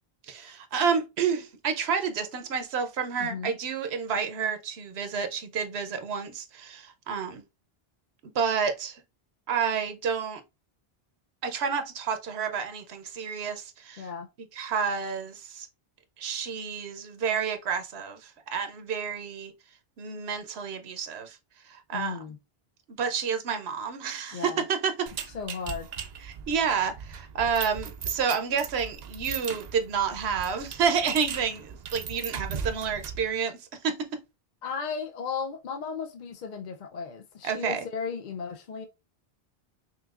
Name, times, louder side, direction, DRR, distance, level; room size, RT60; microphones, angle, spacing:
voice 1, 0.3-7.4 8.3-9.0 9.5-10.4 11.4-14.0 14.5-15.7 16.2-19.5 20.0-21.4 21.7-22.2 23.0-25.1 26.5-34.2 37.4-37.8, right 6 dB, 85° right, 1.0 m, -29 dB
voice 2, 3.2-3.6 14.0-14.3 21.9-22.4 24.3-24.6 25.3-25.9 34.6-38.9, left 6 dB, 55° left, 0.7 m, -35 dB
sound 1, 25.1-33.3, right 7 dB, 55° right, 0.5 m, -38 dB
5.7 x 2.6 x 2.4 m
omnidirectional pair, 1.1 m